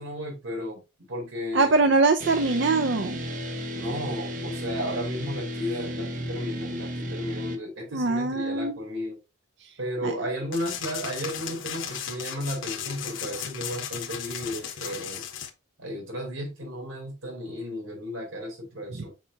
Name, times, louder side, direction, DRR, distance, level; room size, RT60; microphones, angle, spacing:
voice 1, 0.0-1.9 3.7-9.2 9.8-15.3 15.8-19.1, equal, 90° right, 3.8 m, -34 dB
voice 2, 1.5-3.2 7.9-8.8 9.6-9.7 10.0-10.1 18.9-19.1, right 3 dB, 60° right, 0.6 m, -23 dB
sound 1, 2.2-7.6, equal, 40° right, 1.0 m, -34 dB
sound 2, 10.5-15.5, left 8 dB, 65° left, 1.0 m, -35 dB
7.4 x 4.6 x 2.7 m
head